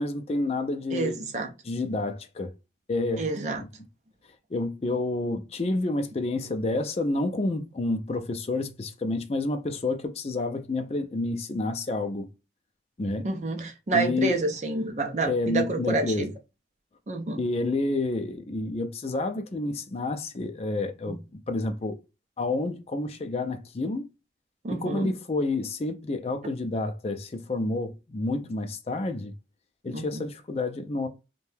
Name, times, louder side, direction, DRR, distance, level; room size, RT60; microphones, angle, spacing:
voice 1, 0.0-1.2 1.6-2.5 2.9-3.3 3.6-3.7 4.5-12.3 13.0-13.3 13.9-14.4 15.3-16.3 17.4-22.0 22.4-24.1 24.7-29.4 29.8-31.1, left 2 dB, 35° left, 0.4 m, -29 dB
voice 2, 0.9-1.5 3.2-3.6 13.2-16.3 17.1-17.4 21.1-21.2 24.6-25.1 29.9-30.3, right 3 dB, 40° right, 0.5 m, -28 dB
2.7 x 2.2 x 3.2 m
head